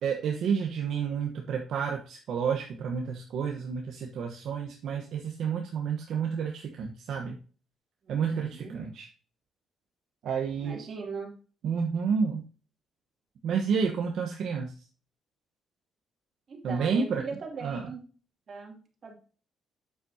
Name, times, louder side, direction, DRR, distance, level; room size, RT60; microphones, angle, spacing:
voice 1, 0.0-7.4 8.1-9.1 10.2-10.8 11.6-12.4 13.4-14.7 16.6-17.2 17.6-17.9, right 6 dB, 75° right, 2 dB, 1.1 m, -30 dB
voice 2, 8.0-8.8 10.6-11.3 16.5-18.0 18.5-19.2, right 5 dB, 50° right, 2 dB, 2.8 m, -40 dB
8.4 x 7.5 x 2.8 m, 0.38 s
cardioid pair, 90°, 0 cm